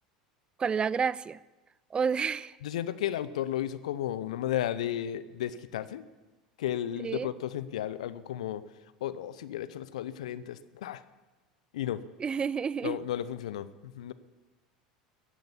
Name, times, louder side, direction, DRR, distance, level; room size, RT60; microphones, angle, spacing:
voice 1, 0.6-1.4 1.9-2.5 7.0-7.3 12.2-13.0, right 6 dB, 25° right, 21 dB, 0.4 m, -29 dB
voice 2, 2.6-6.0 6.6-8.6 9.0-11.0 11.7-12.0 12.8-13.7 14.0-14.1, left 11 dB, 70° left, 15 dB, 0.8 m, -33 dB
15.5 x 10.5 x 8.4 m, 1.2 s
figure-of-eight pair, 75°, 4 cm